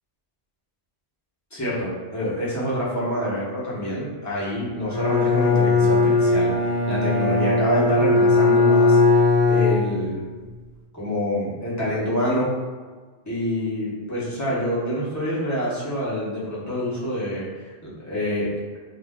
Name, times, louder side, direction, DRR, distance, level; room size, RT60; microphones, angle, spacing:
voice 1, 1.5-6.5 6.9-9.2 9.5-10.2 10.9-12.5 13.3-17.5 17.8-18.5, equal, 20° left, -9 dB, 0.7 m, -26 dB
Bowed string instrument, 4.9-10.3, left 3 dB, 10° right, 0.9 m, -19 dB
2.4 x 2.1 x 3.4 m, 1.4 s
omnidirectional pair, 1.1 m